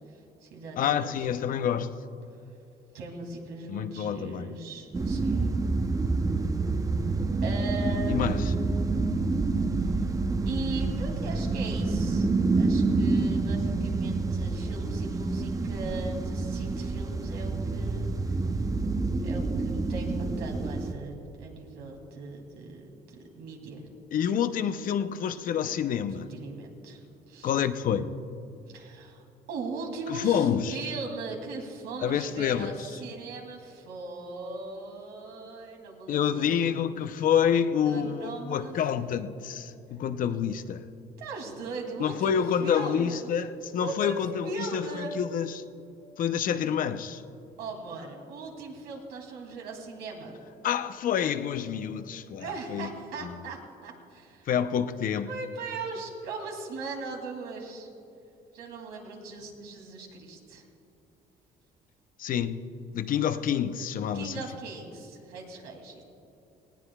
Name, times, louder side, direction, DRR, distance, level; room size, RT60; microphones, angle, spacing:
voice 1, 0.1-1.2 2.9-5.6 7.4-8.9 9.8-10.1 10.5-12.3 12.6-18.3 19.2-23.8 26.3-27.5 28.7-36.5 37.9-38.8 41.2-43.3 43.8-45.2 47.6-50.4 52.4-54.5 55.3-57.9 58.5-60.6 64.1-66.0, right 3 dB, 85° right, 1 dB, 2.5 m, -39 dB
voice 2, 0.8-1.9 3.7-4.5 8.1-8.4 24.1-26.3 27.4-28.1 30.1-30.8 32.0-32.9 36.1-40.8 42.0-45.6 46.2-47.2 50.6-52.9 53.2-53.3 54.5-55.3 62.2-62.7 62.9-64.4, left 8 dB, 55° left, 11 dB, 0.6 m, -28 dB
sound 1, 4.9-20.9, right 3 dB, 20° right, 0.7 m, -28 dB
19.0 x 17.0 x 2.3 m, 2.7 s
cardioid pair, 110°, 17 cm